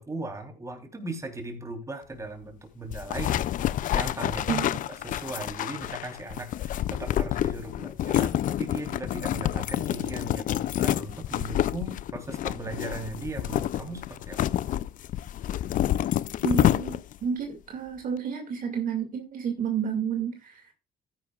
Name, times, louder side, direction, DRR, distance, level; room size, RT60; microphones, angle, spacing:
voice 1, 0.0-4.6 5.0-14.4, right 2 dB, 20° right, 4 dB, 3.3 m, -38 dB
sound 1, 2.9-17.2, left 12 dB, 50° left, 0.4 m, -28 dB
voice 2, 4.5-4.8 16.4-20.7, right 6 dB, 55° right, 4 dB, 2.2 m, -30 dB
14.0 x 10.0 x 2.4 m, 0.29 s
cardioid pair, 110°, 17 cm